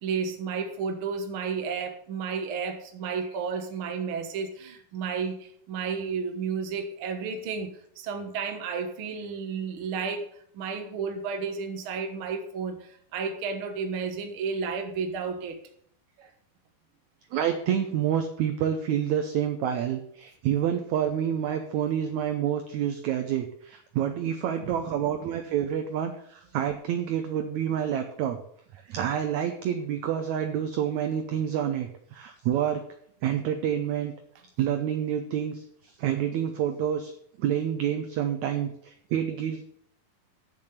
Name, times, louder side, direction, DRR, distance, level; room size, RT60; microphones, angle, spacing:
voice 1, 0.0-10.2 10.5-15.6 24.6-24.9, right 5 dB, 55° right, 5 dB, 1.5 m, -32 dB
voice 2, 17.3-28.4 28.7-32.8 33.2-34.1 34.6-37.1 37.4-39.6, right 9 dB, 75° right, 7 dB, 1.7 m, -28 dB
7.9 x 7.2 x 8.0 m, 0.66 s
omnidirectional pair, 4.2 m